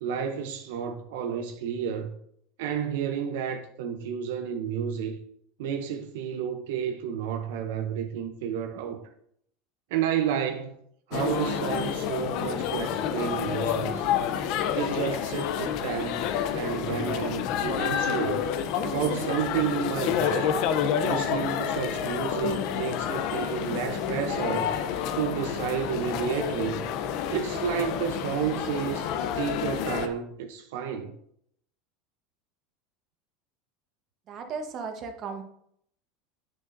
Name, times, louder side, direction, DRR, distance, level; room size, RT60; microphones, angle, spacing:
voice 1, 0.0-2.2 2.6-5.2 5.6-9.0 9.9-10.8 11.1-14.1 14.7-16.3 16.5-18.4 18.8-20.6 21.0-24.7 25.2-26.8 27.3-29.1 29.4-31.1, right 8 dB, 80° right, 0.6 m, -31 dB
sound 1, 11.1-30.1, left 8 dB, 55° left, 0.6 m, -29 dB
voice 2, 34.3-35.4, right 5 dB, 40° right, 1.1 m, -35 dB
8.4 x 6.5 x 2.6 m
supercardioid pair, 140°, 0 cm